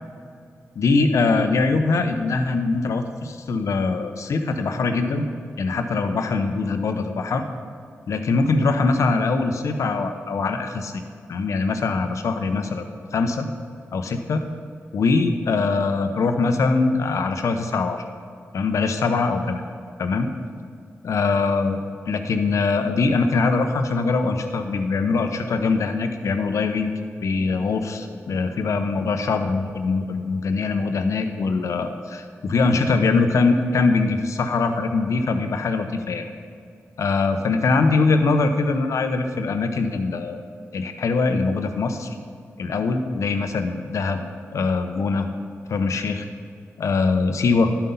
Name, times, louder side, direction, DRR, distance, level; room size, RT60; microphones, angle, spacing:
voice 1, 0.8-5.3 5.6-7.4 8.1-10.9 11.3-13.5 13.9-14.5 14.9-18.0 18.5-19.6 20.0-20.3 21.0-21.8 22.1-26.9 27.2-36.3 37.0-40.4 40.7-42.1 42.6-44.2 44.5-45.3 45.7-46.3 46.8-47.7, left 4 dB, 75° left, 7 dB, 0.8 m, -22 dB
11.5 x 5.8 x 5.4 m, 2.3 s
wide cardioid pair, 105°, 5 cm